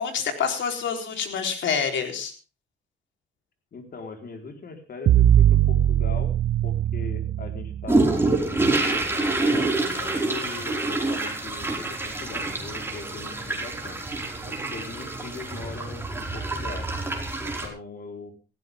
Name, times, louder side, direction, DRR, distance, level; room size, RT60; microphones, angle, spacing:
voice 1, 0.0-2.3, left 6 dB, 70° left, 5 dB, 4.1 m, -27 dB
voice 2, 3.7-6.3 6.6-8.7 8.9-14.0 14.4-16.9 17.4-18.3, left 4 dB, 50° left, 5 dB, 4.4 m, -40 dB
sound 1, 5.1-8.1, right 11 dB, 60° right, 0.8 m, -21 dB
sound 2, 7.9-17.7, right 2 dB, 10° right, 5.1 m, -27 dB
18.0 x 15.5 x 3.7 m, 0.33 s
cardioid pair, 90°, 20 cm